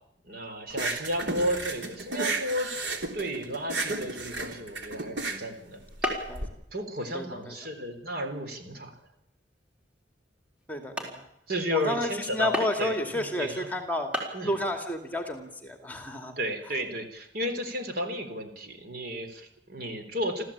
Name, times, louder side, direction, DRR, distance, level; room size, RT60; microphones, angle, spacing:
voice 1, 0.2-2.7 3.1-6.1 6.7-8.9 11.5-13.7 14.3-14.5 16.4-20.4, equal, 60° right, 6 dB, 3.8 m, -33 dB
sound 1, 0.7-6.5, right 3 dB, 90° right, 3.4 m, -33 dB
sound 2, 6.0-6.4 6.8-7.2 7.8-7.9 8.5-8.7 9.4-9.5 10.0-10.1 10.6-10.7 11.0-11.2 12.5-13.0 13.8-13.9 14.1-14.4, equal, 5° right, 4.4 m, -33 dB
voice 2, 7.1-7.5 10.7-11.2 11.7-16.3, left 1 dB, 10° left, 6 dB, 2.4 m, -31 dB
28.0 x 14.0 x 8.7 m, 0.80 s
head